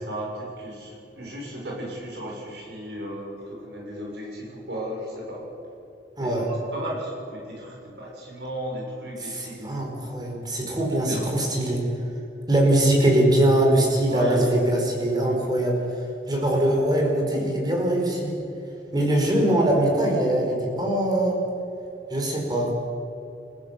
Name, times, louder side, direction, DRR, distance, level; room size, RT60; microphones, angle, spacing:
voice 1, 0.0-5.5 6.2-9.9 10.8-11.3 14.1-14.5 16.4-16.8, right 1 dB, 70° right, -2 dB, 6.4 m, -35 dB
voice 2, 9.2-11.8 12.5-15.7 16.3-18.4 18.9-21.4 22.1-22.7, right 1 dB, 25° right, 0 dB, 4.9 m, -22 dB
28.0 x 15.5 x 7.1 m, 2.8 s
head